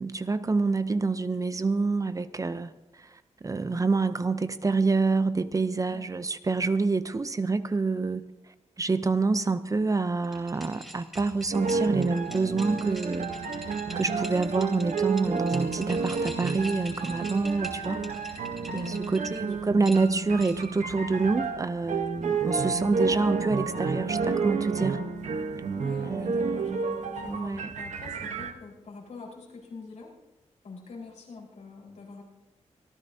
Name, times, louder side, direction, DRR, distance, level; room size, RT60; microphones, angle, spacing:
voice 1, 0.0-2.7 3.0-8.2 8.8-18.0 18.3-18.4 18.7-25.0 26.0-26.8 27.3-27.7, right 3 dB, 30° right, 0.6 m, -27 dB
sound 1, 10.2-19.4 19.8-20.8, right 1 dB, ahead, 3.2 m, -44 dB
sound 2, 11.5-28.5, right 5 dB, 80° right, 1.0 m, -31 dB
voice 2, 18.7-19.6 25.7-30.1 30.6-32.2, left 4 dB, 90° left, 4.5 m, -45 dB
25.0 x 14.5 x 2.7 m
wide cardioid pair, 135°, 12 cm